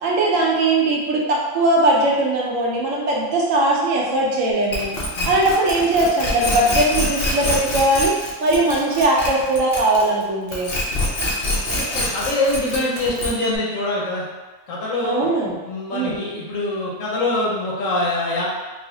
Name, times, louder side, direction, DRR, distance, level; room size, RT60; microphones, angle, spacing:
voice 1, 0.0-4.9 5.2-8.1 8.4-10.7 15.0-15.6 15.9-16.2, right 2 dB, 75° right, -3 dB, 1.0 m, -19 dB
sound 1, 4.7-10.2 10.5-13.6, left 1 dB, 55° left, 0.9 m, -24 dB
voice 2, 11.7-14.2 14.7-15.3 15.6-18.4, left 2 dB, 75° left, -5 dB, 1.2 m, -24 dB
3.9 x 2.0 x 2.8 m, 1.3 s
omnidirectional pair, 1.4 m